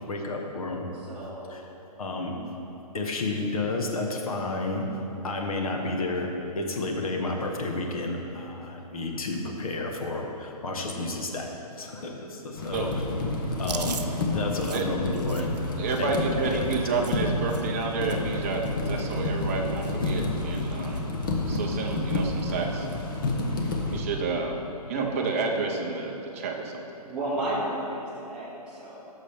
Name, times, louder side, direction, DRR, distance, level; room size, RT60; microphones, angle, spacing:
voice 1, 0.1-0.9 1.5-1.6 2.0-2.4 2.9-4.8 5.2-11.5 11.8-12.9 13.6-14.0 14.3-15.5 16.0-16.2 16.5-16.7, left 2 dB, 60° left, 2 dB, 1.3 m, -31 dB
voice 2, 1.1-1.5 24.9-25.1 27.0-29.0, right 1 dB, 5° right, -12 dB, 1.7 m, -32 dB
sound 1, 12.6-24.0, left 2 dB, 30° left, 0.8 m, -29 dB
Chewing mastication, 13.6-17.8 18.1-18.4 18.6-19.6 19.8-20.1 20.4-21.1 21.5-21.6 22.7-23.1, right 6 dB, 80° right, 0.7 m, -41 dB
voice 3, 15.7-21.1 21.5-22.9 23.9-24.6 24.9-26.8, right 4 dB, 20° right, 1 dB, 0.7 m, -30 dB
14.5 x 6.3 x 3.5 m, 2.9 s
hypercardioid pair, 170°, 20 cm